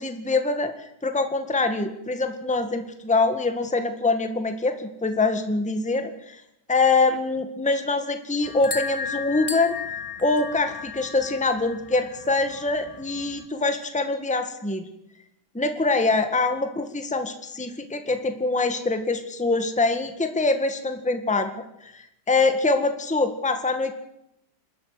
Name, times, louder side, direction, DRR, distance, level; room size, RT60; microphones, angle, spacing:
voice 1, 0.0-6.4 6.7-9.8 10.2-14.9 15.5-21.5 21.8-23.9, left 3 dB, 5° left, 7 dB, 1.6 m, -24 dB
sound 1, 8.4-13.5, left 5 dB, 20° left, 1.8 m, -35 dB
27.5 x 13.5 x 9.5 m, 0.84 s
omnidirectional pair, 1.8 m